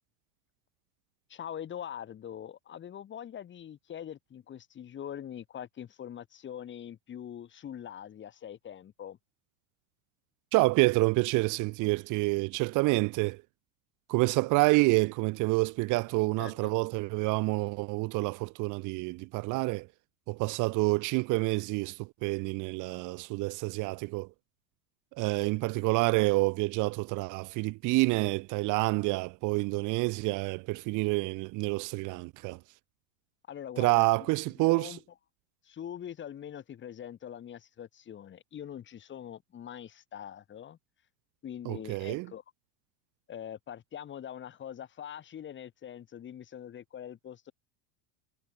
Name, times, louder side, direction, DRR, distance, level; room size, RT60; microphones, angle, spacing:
voice 1, 1.3-9.2 16.4-16.7 33.5-34.0 34.6-35.0 35.6-40.8 41.4-42.4 43.3-47.5, left 9 dB, 30° left, 4.5 m, -43 dB
voice 2, 10.5-13.4 14.1-19.9 20.3-24.3 25.1-32.6 33.8-35.0 41.6-42.3, right 24 dB, 50° right, 1.5 m, -28 dB
supercardioid pair, 135°, 40 cm